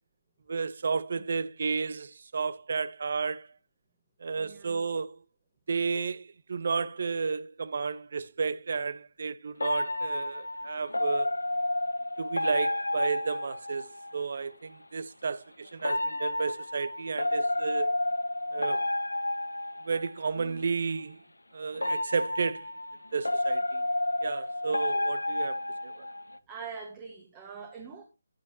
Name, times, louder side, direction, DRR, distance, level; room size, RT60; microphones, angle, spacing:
voice 1, 0.5-3.5 4.2-5.2 5.7-11.3 12.2-13.9 14.1-17.9 18.5-18.8 19.8-21.2 21.5-22.7 23.1-23.9 24.2-25.6 25.8-26.1, right 5 dB, 50° right, 0.7 m, -32 dB
voice 2, 4.4-4.8 20.4-20.6 26.5-28.0, right 5 dB, 20° right, 1.6 m, -43 dB
sound 1, 9.6-14.2 15.8-20.4 21.7-26.4, left 1 dB, 80° left, 0.6 m, -31 dB
11.0 x 9.1 x 2.9 m
figure-of-eight pair, 150°, 0 cm